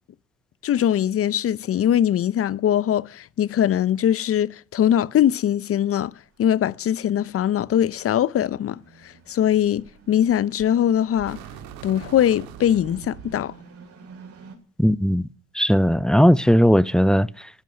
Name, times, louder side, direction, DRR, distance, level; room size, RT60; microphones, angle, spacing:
voice 1, 0.6-6.1 6.4-8.8 9.3-11.4 11.8-13.5, left 10 dB, 40° left, 0.8 m, -21 dB
sound 1, 5.2-14.6, right 4 dB, 45° right, 7.2 m, -50 dB
sound 2, 10.3-10.7 11.1-13.5, right 10 dB, 75° right, 2.3 m, -41 dB
voice 2, 14.8-15.3 15.5-17.5, equal, ahead, 0.7 m, -18 dB
14.0 x 10.5 x 9.3 m
hypercardioid pair, 70°, 34 cm